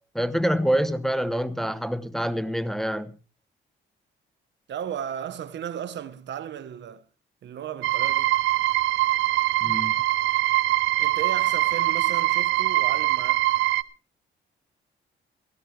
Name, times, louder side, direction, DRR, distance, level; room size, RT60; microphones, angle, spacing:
voice 1, 0.1-3.2 9.6-9.9, equal, ahead, 0.8 m, -26 dB
voice 2, 4.7-7.0 7.4-8.3 11.0-13.5, right 9 dB, 65° right, 1.1 m, -35 dB
sound 1, 7.8-13.8, right 16 dB, 90° right, 0.7 m, -23 dB
18.0 x 14.0 x 3.3 m
cardioid pair, 90°, 20 cm